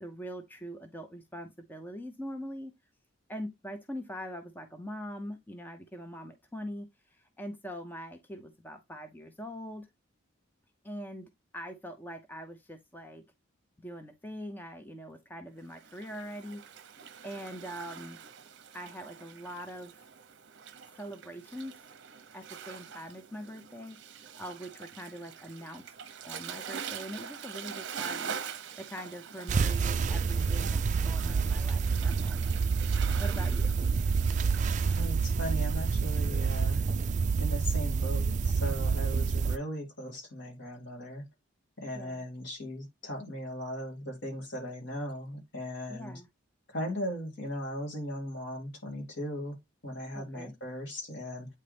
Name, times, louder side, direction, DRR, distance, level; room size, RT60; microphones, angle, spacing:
voice 1, 0.0-2.7 3.3-9.9 10.8-13.2 13.8-18.2 18.7-19.9 20.9-21.8 22.3-25.9 26.2-32.6 33.2-33.8 39.2-39.3 41.9-42.3 45.9-46.3 50.1-50.5, equal, 10° left, 0.6 m, -43 dB
Waves surf, 15.7-35.2, right 7 dB, 60° right, 0.8 m, -44 dB
sound 1, 29.5-39.6, right 5 dB, 35° right, 0.3 m, -28 dB
voice 2, 34.8-36.8 37.4-41.3 41.8-46.2 46.7-49.6 49.8-51.5, equal, 60° left, 2.4 m, -38 dB
8.5 x 4.0 x 3.3 m
head